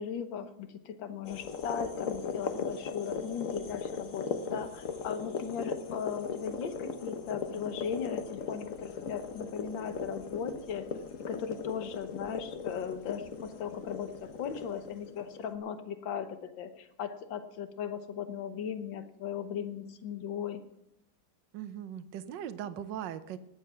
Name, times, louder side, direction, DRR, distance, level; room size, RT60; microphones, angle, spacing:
voice 1, 0.0-10.9 11.2-20.6, left 7 dB, 75° left, 9 dB, 1.8 m, -38 dB
sound 1, 1.2-15.5, left 5 dB, 50° left, 1.2 m, -38 dB
voice 2, 21.5-23.4, right 10 dB, 70° right, 12 dB, 1.4 m, -39 dB
18.5 x 7.6 x 5.8 m, 0.81 s
omnidirectional pair, 2.1 m